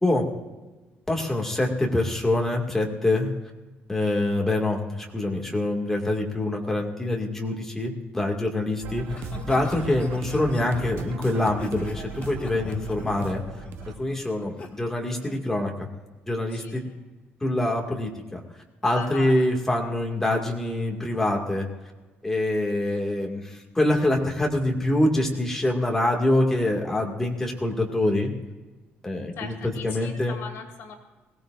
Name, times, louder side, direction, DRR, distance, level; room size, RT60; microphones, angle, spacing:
voice 1, 1.1-3.3 3.9-13.4 14.0-15.9 16.3-16.9 17.4-18.4 18.8-21.7 22.2-28.3 29.0-30.4, left 1 dB, 10° left, 0 dB, 2.1 m, -25 dB
sound 1, 8.8-14.0, right 7 dB, 65° right, 1.0 m, -38 dB
Laughter, 9.0-14.7 15.1-15.4, left 3 dB, 30° left, 1.8 m, -39 dB
voice 2, 16.5-17.0 18.8-19.5 29.3-31.0, left 6 dB, 70° left, 2 dB, 2.8 m, -40 dB
21.5 x 17.0 x 2.6 m, 1.2 s
cardioid pair, 160°, 4 cm